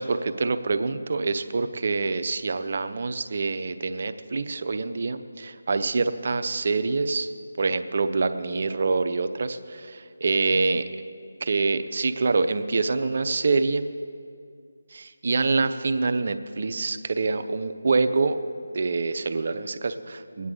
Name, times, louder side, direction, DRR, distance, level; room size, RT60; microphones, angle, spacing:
voice 1, 0.0-7.3 7.6-10.9 11.4-13.9 14.9-18.4 18.7-20.5, right 3 dB, 50° right, 9 dB, 0.6 m, -26 dB
21.0 x 9.5 x 3.8 m, 2.2 s
figure-of-eight pair, 165°, 0 cm